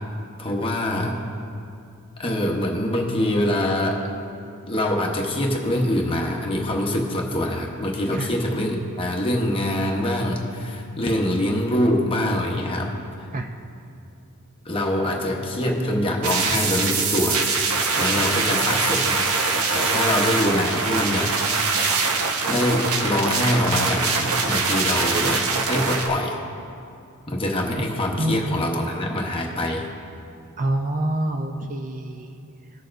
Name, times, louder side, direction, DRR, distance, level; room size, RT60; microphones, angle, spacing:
voice 1, 0.4-1.2 2.2-4.0 4.6-12.9 13.2-13.3 14.6-17.4 18.0-19.1 19.7-21.3 22.5-26.4 27.3-29.9, left 1 dB, 25° left, 0 dB, 1.0 m, -24 dB
sound 1, 16.2-26.1, right 4 dB, 70° right, 0.7 m, -23 dB
voice 2, 28.2-28.6 30.6-32.4, right 1 dB, 35° right, 5 dB, 0.5 m, -26 dB
18.5 x 6.7 x 2.6 m, 2.6 s
head